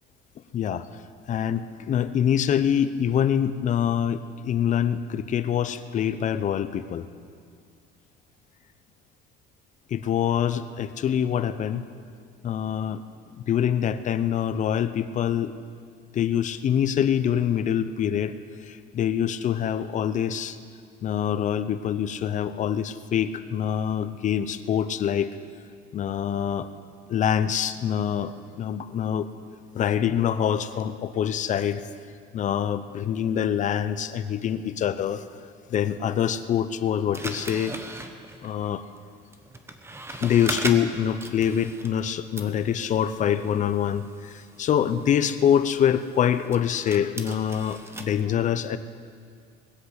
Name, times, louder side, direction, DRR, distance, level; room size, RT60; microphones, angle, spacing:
voice 1, 0.5-0.9 1.3-7.1 9.9-11.9 12.4-13.0 13.3-15.5 16.1-18.3 18.7-20.6 21.0-25.3 25.9-26.7 27.1-29.3 29.7-31.8 32.3-35.2 35.7-37.8 38.4-38.8 40.1-48.8, left 9 dB, 40° left, 12 dB, 0.6 m, -25 dB
sound 1, 37.1-42.1 42.4-48.1, right 2 dB, 15° right, 1.1 m, -39 dB
20.5 x 7.9 x 8.0 m, 2.2 s
cardioid pair, 135°, 19 cm